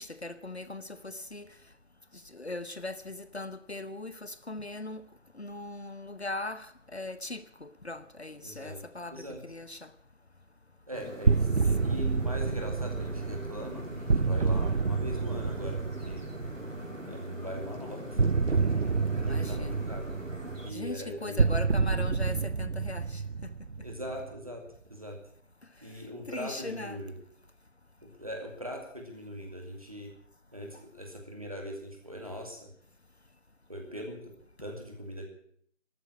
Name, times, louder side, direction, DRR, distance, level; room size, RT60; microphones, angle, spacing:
voice 1, 0.0-1.6 2.1-5.0 5.3-9.9 11.8-12.0 19.2-19.9 20.7-23.5 26.3-27.0 30.7-30.8, left 2 dB, 55° left, 0.9 m, -40 dB
voice 2, 8.4-8.8 9.1-9.4 10.9-16.2 17.0-18.9 19.2-20.1 20.6-21.5 23.8-25.2 25.8-27.1 28.0-30.1 30.5-32.7 33.7-34.3 34.6-35.3, equal, 30° right, 2.2 m, -41 dB
sound 1, 10.9-20.7, equal, 85° right, 3.7 m, -41 dB
sound 2, 11.2-17.0 18.2-24.4, right 4 dB, 60° right, 0.6 m, -28 dB
13.0 x 9.1 x 9.3 m
figure-of-eight pair, 175°, 38 cm